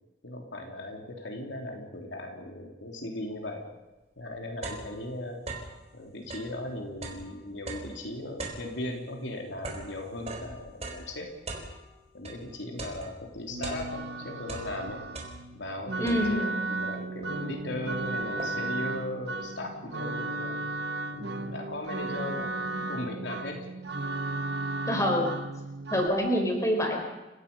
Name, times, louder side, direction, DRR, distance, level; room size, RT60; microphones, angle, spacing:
voice 1, 0.2-3.7 4.2-5.5 5.9-11.3 12.1-15.0 15.5-20.6 21.1-23.6, left 1 dB, 75° left, 2 dB, 3.3 m, -38 dB
sound 1, 3.7-3.8 4.2-5.8 6.2-12.5 12.8-14.2 14.4-15.7 16.1-16.6 17.2-17.3 17.6-18.8, right 2 dB, 35° right, 4.1 m, -41 dB
sound 2, 13.5-26.1, right 2 dB, 60° right, 1.4 m, -35 dB
voice 2, 16.0-16.4 24.9-25.3 25.9-27.1, equal, 15° left, 1 dB, 5.0 m, -26 dB
29.5 x 17.0 x 5.5 m, 1.1 s
head